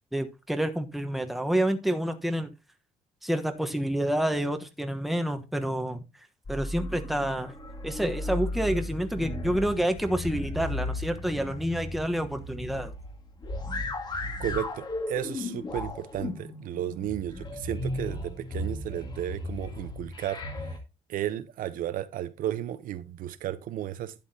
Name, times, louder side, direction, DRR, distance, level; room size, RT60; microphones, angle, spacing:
voice 1, 0.1-2.5 3.2-6.0 6.5-7.5 7.8-12.9, right 1 dB, ahead, 1.1 m, -28 dB
sound 1, 6.4-20.8, left 1 dB, 30° left, 2.0 m, -35 dB
voice 2, 14.4-20.7 21.1-24.1, right 11 dB, 70° right, 0.8 m, -34 dB
11.5 x 8.6 x 2.8 m
cardioid pair, 135°, 15 cm